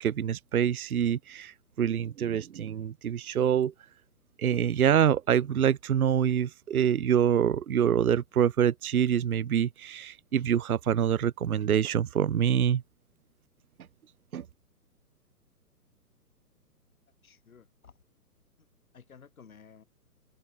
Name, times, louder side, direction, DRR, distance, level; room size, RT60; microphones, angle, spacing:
voice 1, 0.0-3.7 4.4-12.8 14.3-14.4, right 9 dB, 65° right, 0.7 m, -26 dB
voice 2, 17.2-18.0 18.9-19.8, left 6 dB, 60° left, 3.5 m, -54 dB
figure-of-eight pair, 125°, 48 cm